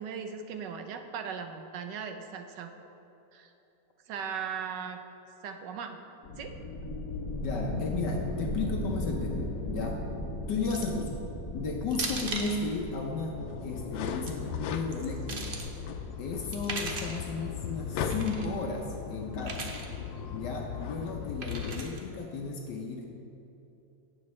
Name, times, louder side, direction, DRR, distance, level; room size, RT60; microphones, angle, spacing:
voice 1, 0.0-2.9 3.3-3.5 4.1-5.0 5.4-6.0 6.4-6.6, right 6 dB, 70° right, 6 dB, 1.3 m, -38 dB
sound 1, 6.2-17.7, equal, 55° left, 1.7 m, -38 dB
voice 2, 7.4-10.1 10.5-11.2 11.5-13.3 13.6-15.5 16.2-19.7 20.3-23.1, left 4 dB, 70° left, 1 dB, 1.4 m, -34 dB
sound 2, 10.6-11.0 11.9-12.6 13.9-14.3 14.9-15.7 16.5-17.2 18.1-18.5 19.4-19.9 21.4-22.0, right 3 dB, 45° right, 0.7 m, -37 dB
sound 3, 13.4-21.9, left 6 dB, 90° left, 1.4 m, -37 dB
16.5 x 7.1 x 3.2 m, 3.0 s
omnidirectional pair, 2.0 m